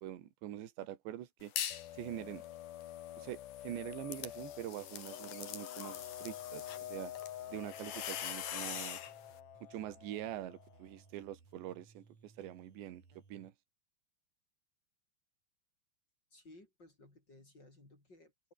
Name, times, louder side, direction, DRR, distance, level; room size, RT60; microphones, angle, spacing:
voice 1, 0.0-1.5 1.9-2.4 3.2-3.4 3.6-7.1 7.5-9.0 9.7-13.0 13.3-13.5, right 12 dB, 80° right, 4.1 m, -44 dB
sound 1, 1.4-1.9 2.3-9.1, left 10 dB, 55° left, 3.2 m, -44 dB
sound 2, 1.7-11.0, left 13 dB, 75° left, 3.7 m, -48 dB
sound 3, 6.0-13.5, right 4 dB, 35° right, 5.9 m, -63 dB
voice 2, 16.3-18.5, left 2 dB, 25° left, 6.1 m, -59 dB
open air
omnidirectional pair, 5.1 m